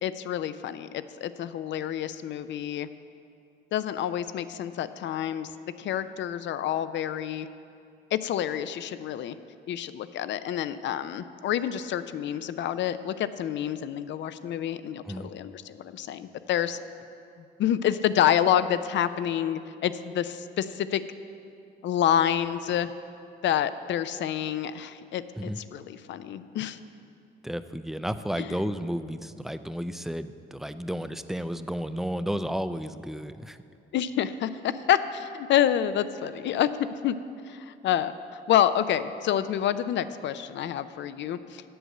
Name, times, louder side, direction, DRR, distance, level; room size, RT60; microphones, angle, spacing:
voice 1, 0.0-2.9 3.7-5.5 5.8-7.5 8.1-9.4 9.7-16.8 17.6-21.0 21.8-22.9 23.4-26.8 28.4-28.5 33.9-36.7 37.0-37.2 37.5-41.6, left 10 dB, 65° left, 13 dB, 0.4 m, -28 dB
voice 2, 27.4-33.6, equal, ahead, 11 dB, 0.3 m, -32 dB
7.9 x 7.8 x 6.5 m, 2.6 s
cardioid pair, 90°, 20 cm